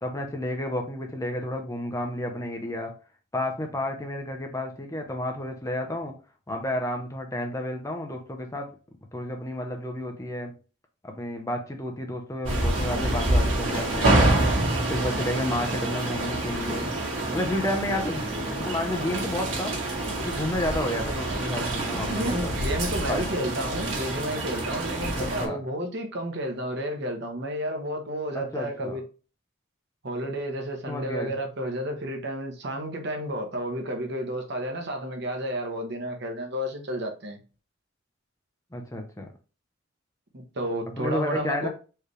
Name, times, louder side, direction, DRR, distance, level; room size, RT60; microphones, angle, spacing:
voice 1, 0.0-2.9 3.3-6.1 6.5-8.7 9.1-10.5 11.0-14.2 14.9-16.9 17.3-19.8 20.2-22.5 23.1-23.3 25.2-25.6 28.3-29.0 30.9-31.3 38.7-39.3 41.0-41.7, left 1 dB, 15° left, 0.8 m, -31 dB
sound 1, 12.4-25.5, right 1 dB, 75° right, 2.0 m, -27 dB
voice 2, 21.9-29.0 30.0-37.4 40.3-41.7, equal, 60° right, 1.1 m, -31 dB
4.7 x 3.3 x 3.2 m
head